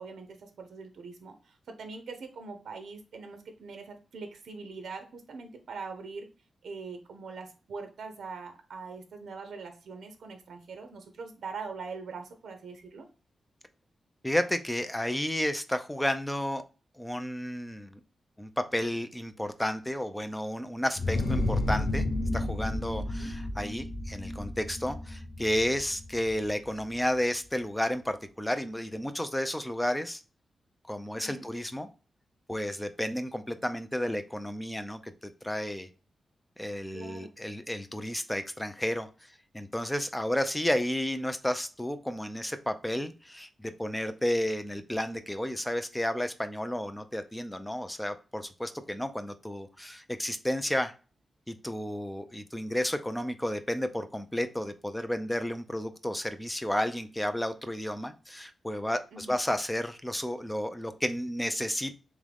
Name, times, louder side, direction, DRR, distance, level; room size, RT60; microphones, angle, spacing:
voice 1, 0.0-6.3 6.6-13.1 23.0-23.3 31.2-31.4 36.9-37.3 59.1-59.4, right 4 dB, 75° right, 6 dB, 0.6 m, -42 dB
voice 2, 14.2-16.6 17.0-18.0 18.4-22.0 22.3-30.2 30.9-31.9 32.5-35.9 36.6-50.9 51.5-62.0, left 1 dB, 5° left, 9 dB, 0.4 m, -32 dB
sound 1, 20.9-26.5, left 2 dB, 40° left, 1.1 m, -32 dB
3.6 x 3.1 x 3.4 m, 0.34 s
wide cardioid pair, 155°, 0 cm